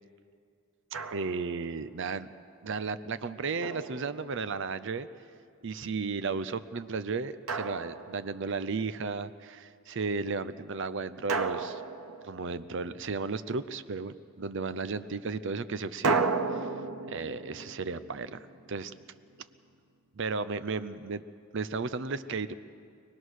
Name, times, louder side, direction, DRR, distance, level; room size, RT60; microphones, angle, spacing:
Drum, 0.9-1.6 3.6-4.7 7.5-8.6 11.3-12.9 16.0-19.0, right 4 dB, 75° right, 0.9 m, -34 dB
voice 1, 1.1-2.3 2.6-5.1 5.6-11.8 12.2-16.7 17.1-18.9 20.2-21.2 21.5-22.5, right 4 dB, 55° right, 14 dB, 0.6 m, -34 dB
25.0 x 19.0 x 6.4 m, 2.3 s
head